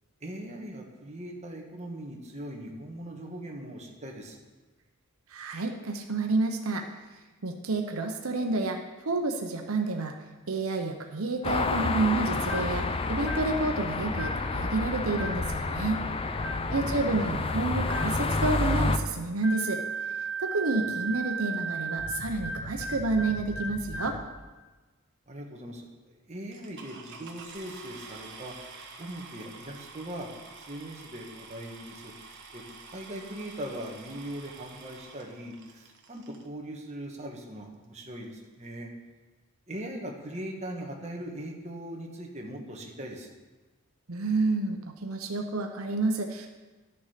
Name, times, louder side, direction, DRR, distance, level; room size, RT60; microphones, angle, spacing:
voice 1, 0.2-4.4 25.3-25.9 26.3-28.5 29.0-32.6 32.9-38.9 39.7-43.3, right 1 dB, 30° right, 0 dB, 1.5 m, -40 dB
voice 2, 5.3-6.8 7.4-8.8 9.1-10.1 10.5-16.0 16.7-19.8 20.4-24.2 44.1-46.5, right 3 dB, 85° right, 4 dB, 0.9 m, -29 dB
sound 1, 11.4-19.0, left 3 dB, 25° left, 0.5 m, -29 dB
sound 2, 12.4-12.8 13.2-13.6 14.1-14.5 15.1-15.5 16.3-16.7 17.8-18.2 19.4-24.2, right 3 dB, 50° left, 1.4 m, -35 dB
sound 3, 26.5-36.5 37.2-37.3 37.8-37.9 38.1-38.4, right 4 dB, 55° right, 1.4 m, -48 dB
12.0 x 7.0 x 5.0 m, 1.2 s
head